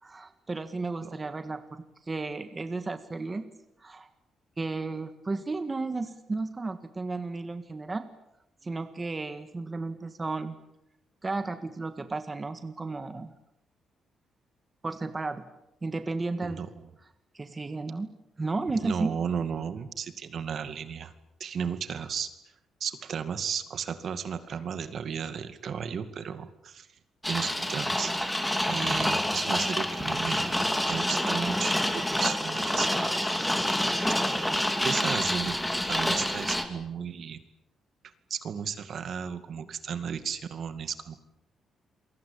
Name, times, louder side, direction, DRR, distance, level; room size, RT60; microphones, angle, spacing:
voice 1, 0.0-3.5 3.8-4.1 4.6-8.0 8.6-10.5 11.2-13.3 14.8-15.4 15.8-16.6 17.3-18.1 18.4-19.1, right 3 dB, 20° right, 9 dB, 1.7 m, -33 dB
voice 2, 18.8-21.1 21.4-22.3 22.8-26.9 27.3-33.4 34.8-37.4 38.3-41.2, right 7 dB, 55° right, 11 dB, 2.3 m, -34 dB
sound 1, 27.2-36.6, left 1 dB, 5° left, 2.8 m, -27 dB
28.5 x 23.0 x 8.6 m, 0.84 s
cardioid pair, 145°, 0 cm